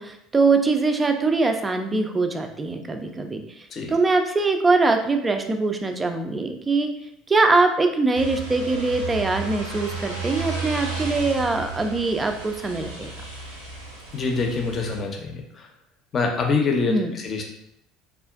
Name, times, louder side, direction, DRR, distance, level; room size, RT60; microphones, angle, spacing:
voice 1, 0.0-6.9 7.3-13.1 16.9-17.1, right 3 dB, 20° right, 6 dB, 0.4 m, -22 dB
sound 1, 8.1-15.0, right 3 dB, 85° right, 0.6 m, -34 dB
voice 2, 14.1-15.7 16.1-17.4, left 4 dB, 35° left, 2 dB, 0.6 m, -25 dB
3.6 x 2.3 x 2.4 m, 0.76 s
figure-of-eight pair, 65°, 0 cm